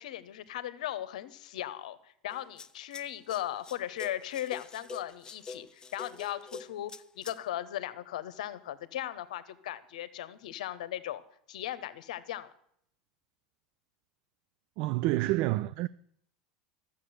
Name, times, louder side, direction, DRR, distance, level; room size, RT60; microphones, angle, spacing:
voice 1, 0.0-11.2 11.5-12.5, left 12 dB, 70° left, 0.9 m, -38 dB
sound 1, 2.3-7.4, left 4 dB, 20° left, 0.6 m, -46 dB
voice 2, 14.8-15.9, right 17 dB, 55° right, 0.4 m, -28 dB
12.5 x 7.2 x 7.8 m
hypercardioid pair, 85°, 4 cm